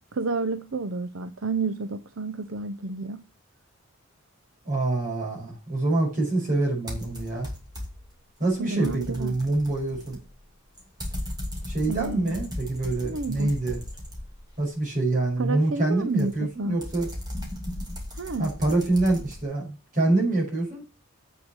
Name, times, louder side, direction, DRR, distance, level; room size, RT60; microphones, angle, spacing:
voice 1, 0.1-3.2 8.6-9.3 11.9-12.4 13.0-13.5 15.4-16.8 18.1-18.5, right 3 dB, 65° right, 0.7 m, -30 dB
voice 2, 4.6-7.5 8.4-10.2 11.7-13.8 14.6-17.1 18.4-20.8, right 2 dB, 35° right, 5.5 m, -26 dB
sound 1, 6.9-8.1 8.5-14.7 16.2-19.4, left 1 dB, 20° right, 2.5 m, -37 dB
7.9 x 6.2 x 7.8 m
head